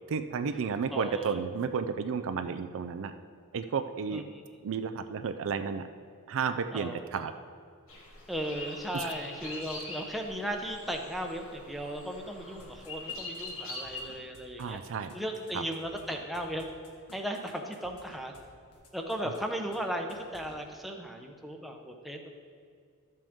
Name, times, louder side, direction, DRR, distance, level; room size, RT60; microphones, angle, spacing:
voice 1, 0.1-3.1 3.5-4.2 4.6-5.9 6.3-7.3 8.9-9.1 14.6-15.1 15.5-15.6, right 6 dB, 60° right, 9 dB, 0.4 m, -32 dB
voice 2, 0.9-1.3 4.1-4.4 6.7-7.3 8.3-14.8 15.1-16.7 17.1-18.4 18.9-22.3, equal, ahead, 2 dB, 0.7 m, -36 dB
sound 1, 7.9-14.1, left 2 dB, 60° left, 1.5 m, -43 dB
sound 2, 12.6-18.4 18.7-19.4 19.7-19.8 20.1-20.5, left 2 dB, 80° left, 1.5 m, -55 dB
12.5 x 7.6 x 3.6 m, 2.2 s
head